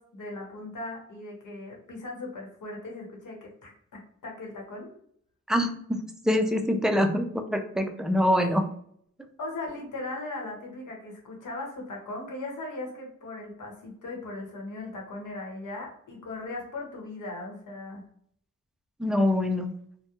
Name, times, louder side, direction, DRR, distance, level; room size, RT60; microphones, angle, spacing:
voice 1, 0.0-4.9 8.4-8.5 9.4-18.0, left 2 dB, 65° left, 0 dB, 1.0 m, -38 dB
voice 2, 5.5-8.7 19.0-19.7, left 1 dB, ahead, 4 dB, 0.3 m, -25 dB
2.2 x 2.1 x 2.8 m, 0.66 s
cardioid pair, 60°, 33 cm